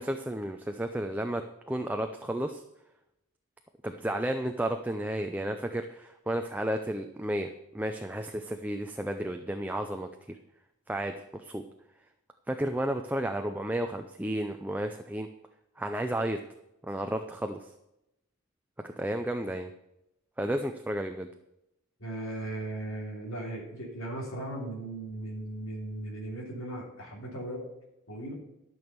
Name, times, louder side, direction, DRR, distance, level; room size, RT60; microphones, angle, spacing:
voice 1, 0.0-2.6 3.8-10.4 10.9-11.6 12.5-15.3 15.8-16.4 16.8-17.7 18.8-19.7 20.4-21.3, right 1 dB, 10° right, 5 dB, 0.5 m, -32 dB
voice 2, 22.0-27.7 28.1-28.3, right 1 dB, 90° left, -3 dB, 3.1 m, -37 dB
12.5 x 6.2 x 6.7 m, 0.88 s
head